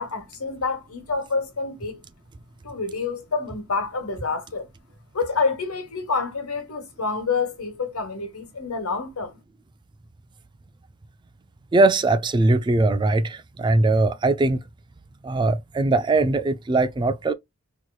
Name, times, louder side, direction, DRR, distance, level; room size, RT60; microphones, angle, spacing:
voice 1, 0.0-2.0 2.6-4.7 5.1-9.4, left 4 dB, 70° left, 1.3 m, -28 dB
voice 2, 11.7-14.6 15.2-17.3, right 2 dB, 20° right, 0.3 m, -20 dB
4.4 x 2.9 x 2.3 m
head